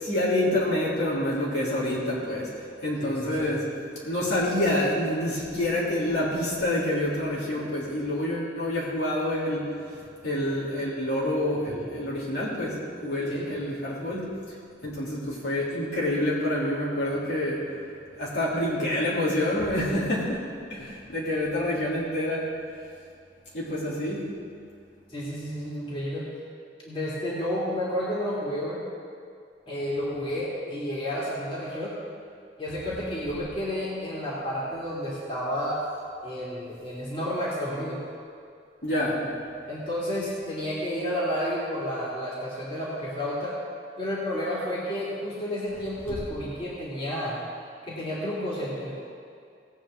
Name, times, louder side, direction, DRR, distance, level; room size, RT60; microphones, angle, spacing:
voice 1, 0.0-2.5 2.8-3.7 4.0-10.0 10.2-14.3 14.8-17.8 18.1-20.4 20.7-22.5 23.5-24.3 38.8-39.3 46.1-46.2, left 1 dB, 75° left, -7 dB, 3.4 m, -27 dB
voice 2, 3.0-3.6 13.3-13.5 25.1-26.3 26.9-28.8 29.7-31.9 32.6-35.8 36.2-38.0 39.6-43.6 44.0-47.4 47.8-49.0, equal, 30° left, -8 dB, 2.8 m, -31 dB
18.5 x 8.5 x 3.9 m, 2.3 s
head